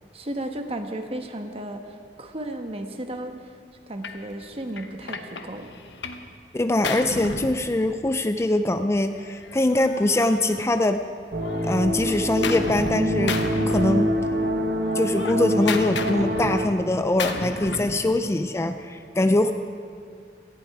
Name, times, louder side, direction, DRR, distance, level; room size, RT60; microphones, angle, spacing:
voice 1, 0.1-3.4 3.9-5.7, right 1 dB, 35° right, 6 dB, 1.2 m, -34 dB
Gunshot gunfire, 4.0-4.2 4.8-6.3 6.5-8.3 9.2-11.0 11.4-13.0 13.3-14.5 14.8-18.0, left 4 dB, 90° left, 1.1 m, -33 dB
voice 2, 6.5-11.0 11.6-14.2 14.9-19.5, left 1 dB, 15° left, 8 dB, 0.4 m, -23 dB
sound 1, 11.3-16.7, equal, 60° right, 1.4 m, -25 dB
19.0 x 15.0 x 4.8 m, 2.2 s
head